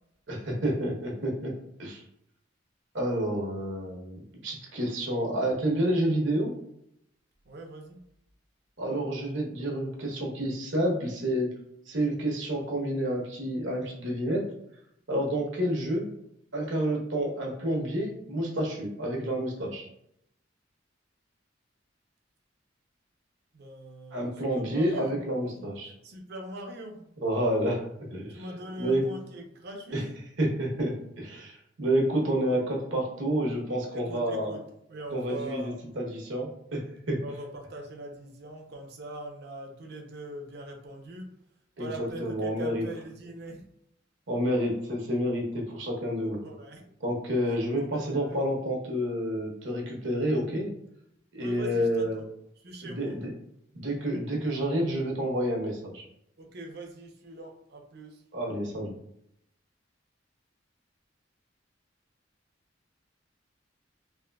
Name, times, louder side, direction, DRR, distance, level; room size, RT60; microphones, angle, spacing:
voice 1, 0.3-1.5 1.8-2.0 2.9-6.5 8.8-11.5 11.9-14.4 15.1-16.1 16.5-19.9 24.1-25.9 27.2-28.4 28.8-29.0 29.9-30.0 30.4-34.5 35.1-37.2 41.8-41.9 42.2-42.8 44.3-46.4 47.0-50.7 51.3-52.3 52.8-53.3 53.7-56.0 58.3-58.9, right 1 dB, 80° right, -1 dB, 1.0 m, -29 dB
voice 2, 7.5-8.0 23.5-25.2 25.9-27.1 28.3-30.1 33.9-34.6 34.9-35.8 37.2-41.3 41.8-43.6 46.4-46.9 47.9-48.4 51.4-52.2 52.6-53.2 56.4-58.2, right 1 dB, 60° right, 2 dB, 0.6 m, -42 dB
3.5 x 2.6 x 2.3 m, 0.74 s
head